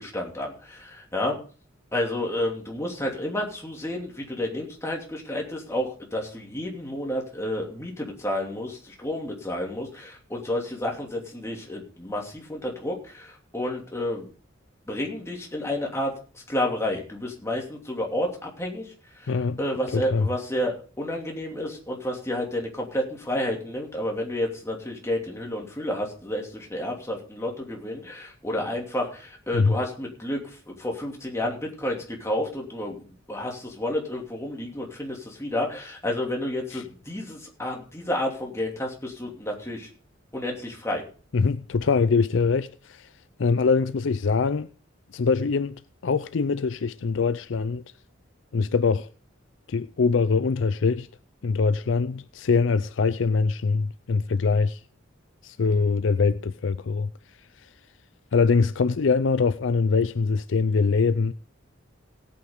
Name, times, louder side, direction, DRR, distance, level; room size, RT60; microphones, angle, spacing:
voice 1, 0.0-1.4 1.9-14.3 14.9-18.9 19.2-39.9 40.3-41.0, left 1 dB, 15° left, 2.8 m, -30 dB
voice 2, 19.3-19.6 19.9-20.3 29.5-29.8 36.7-36.8 41.3-43.1 43.4-44.7 45.1-47.8 48.5-49.1 49.7-51.1 51.4-54.8 55.4-57.1 58.3-61.3, left 4 dB, 65° left, 0.5 m, -23 dB
17.5 x 8.8 x 3.8 m
head